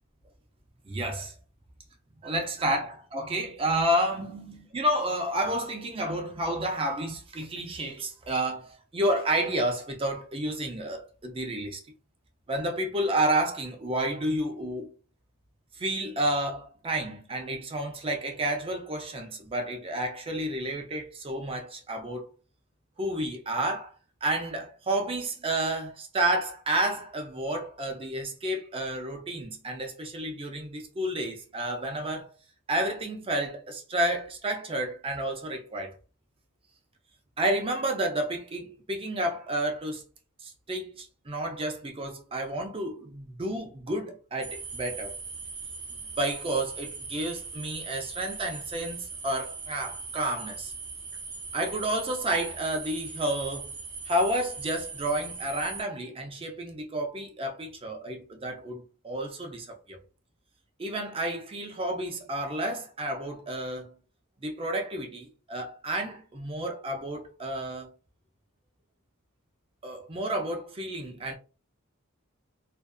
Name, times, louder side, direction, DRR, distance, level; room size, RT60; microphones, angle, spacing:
voice 1, 0.9-1.3 2.2-11.8 12.5-14.9 15.8-22.3 23.0-23.9 24.2-32.3 32.7-36.0 37.4-40.0 40.4-45.1 46.2-50.7 51.5-53.7 54.1-60.0 60.8-63.9 64.4-67.9 69.8-71.3, right 1 dB, 25° right, 0.5 m, -30 dB
sound 1, 44.4-55.8, right 4 dB, 60° right, 0.9 m, -40 dB
2.5 x 2.4 x 2.2 m
head